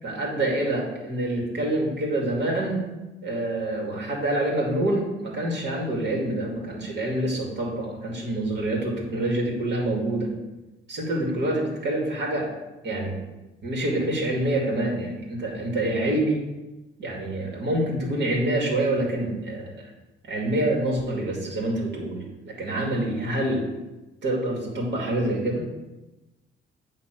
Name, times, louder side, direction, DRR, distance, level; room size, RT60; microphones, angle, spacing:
voice 1, 0.0-2.8 3.2-10.3 10.9-12.5 12.8-13.1 13.6-16.4 17.0-19.7 20.2-23.7 24.2-25.6, right 1 dB, 60° right, -1 dB, 2.3 m, -26 dB
8.7 x 3.1 x 6.1 m, 1.0 s
cardioid pair, 90°, 20 cm